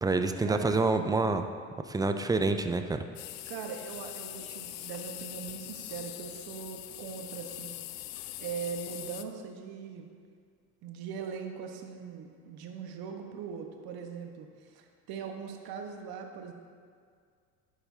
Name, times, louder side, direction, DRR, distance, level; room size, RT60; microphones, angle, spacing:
voice 1, 0.0-1.4 1.9-3.0, right 3 dB, 10° right, 8 dB, 0.4 m, -27 dB
sound 1, 3.2-9.2, left 14 dB, 60° left, 0.6 m, -42 dB
voice 2, 3.5-7.8 8.4-10.1 10.8-16.5, right 6 dB, 55° right, 4 dB, 1.3 m, -40 dB
11.5 x 8.7 x 2.8 m, 2.1 s
hypercardioid pair, 75°, 43 cm